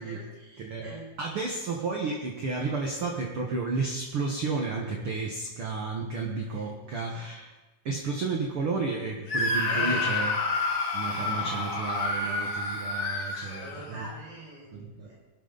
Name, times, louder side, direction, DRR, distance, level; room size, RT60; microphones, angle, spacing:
voice 1, 0.0-1.1 6.5-7.2 9.6-10.1 13.3-15.1, right 2 dB, 80° right, -5 dB, 7.9 m, -44 dB
voice 2, 0.6-7.5 7.9-10.3 10.9-14.1 14.7-15.1, right 4 dB, 50° right, 0 dB, 1.9 m, -32 dB
Screaming, 9.3-14.1, left 3 dB, 30° left, 1.7 m, -29 dB
20.0 x 12.5 x 4.1 m, 1.2 s
omnidirectional pair, 3.8 m